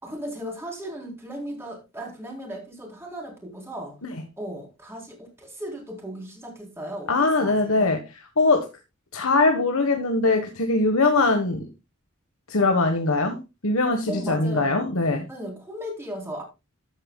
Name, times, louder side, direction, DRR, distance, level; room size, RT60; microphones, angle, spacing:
voice 1, 0.0-4.0 4.4-7.9 14.1-14.7 15.3-16.4, equal, 10° right, 4.0 m, -36 dB
voice 2, 7.1-8.0 8.4-8.7 9.1-11.7 12.5-13.4 13.6-15.2, left 3 dB, 85° left, 1.4 m, -21 dB
13.5 x 9.0 x 2.3 m
head